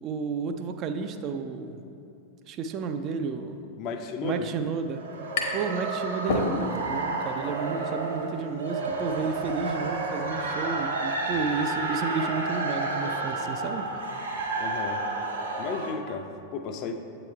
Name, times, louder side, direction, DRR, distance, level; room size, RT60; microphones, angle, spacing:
voice 1, 0.0-1.8 2.5-3.6 4.2-5.0 5.5-14.2, right 5 dB, 35° right, 7 dB, 0.3 m, -32 dB
voice 2, 3.8-4.5 14.6-15.0 15.6-16.9, left 5 dB, 40° left, 6 dB, 0.4 m, -34 dB
sound 1, 4.7-5.8 6.1-7.0, left 3 dB, 55° left, 0.8 m, -29 dB
sound 2, 4.8-15.9, right 3 dB, 70° right, 0.7 m, -31 dB
8.1 x 3.0 x 4.6 m, 2.6 s
figure-of-eight pair, 90°, 0 cm